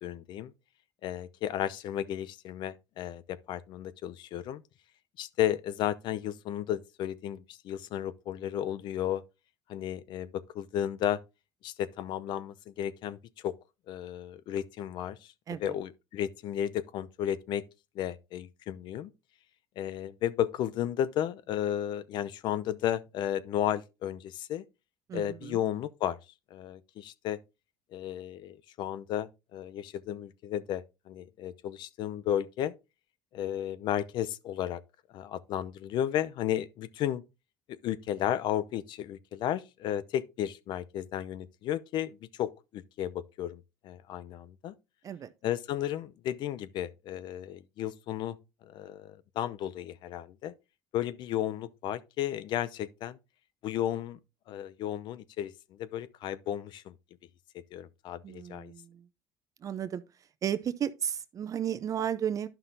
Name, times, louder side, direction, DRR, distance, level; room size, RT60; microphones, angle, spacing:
voice 1, 0.0-0.5 1.0-4.6 5.2-9.2 9.7-11.2 11.6-13.6 13.9-15.3 15.6-17.7 17.9-19.1 19.8-24.6 25.1-26.2 26.5-27.4 27.9-32.7 33.3-34.8 35.1-37.2 37.7-44.7 45.4-48.4 48.6-50.5 50.9-53.2 53.6-54.2 54.5-56.9 57.5-58.7, left 11 dB, 60° left, 0.6 m, -33 dB
voice 2, 25.1-25.6 45.0-45.3 58.2-59.0 59.6-60.0 60.4-62.5, right 9 dB, 40° right, 0.5 m, -33 dB
11.5 x 5.7 x 2.7 m
supercardioid pair, 100°, 9 cm